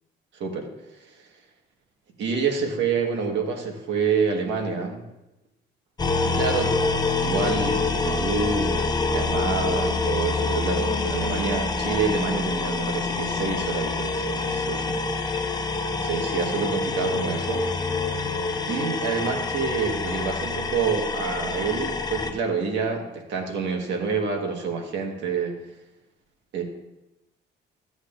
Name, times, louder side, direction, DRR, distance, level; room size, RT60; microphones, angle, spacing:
voice 1, 0.4-0.7 1.1-1.2 2.2-5.0 6.2-15.3 16.0-17.7 18.7-25.6 26.5-26.6, right 5 dB, 75° right, 2 dB, 1.6 m, -28 dB
sound 1, 6.0-22.3, left 3 dB, 20° left, 0.7 m, -26 dB
13.5 x 8.0 x 2.6 m, 0.94 s
cardioid pair, 135°, 19 cm